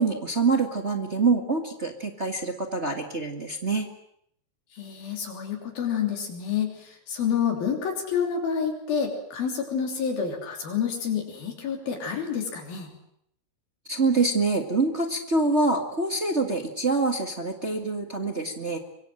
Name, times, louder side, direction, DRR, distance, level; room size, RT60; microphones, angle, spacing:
voice 1, 0.0-3.9 13.9-18.8, right 3 dB, 40° right, 4 dB, 0.9 m, -25 dB
voice 2, 4.7-12.9, left 7 dB, 75° left, 2 dB, 5.1 m, -28 dB
24.5 x 23.5 x 7.9 m, 0.71 s
omnidirectional pair, 4.3 m